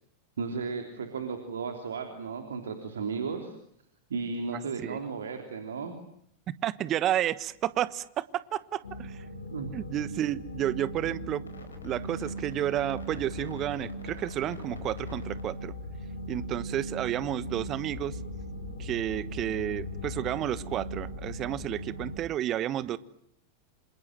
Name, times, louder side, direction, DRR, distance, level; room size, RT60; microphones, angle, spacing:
voice 1, 0.4-3.5 4.1-5.9 9.5-9.7, right 5 dB, 65° right, 3.3 m, -34 dB
voice 2, 6.6-9.2 9.7-11.4 11.8-15.7 16.3-18.2 18.8-23.0, right 12 dB, 30° right, 1.3 m, -31 dB
sound 1, 8.8-22.2, equal, 75° left, 5.2 m, -39 dB
28.0 x 27.5 x 7.8 m
figure-of-eight pair, 90°, 0 cm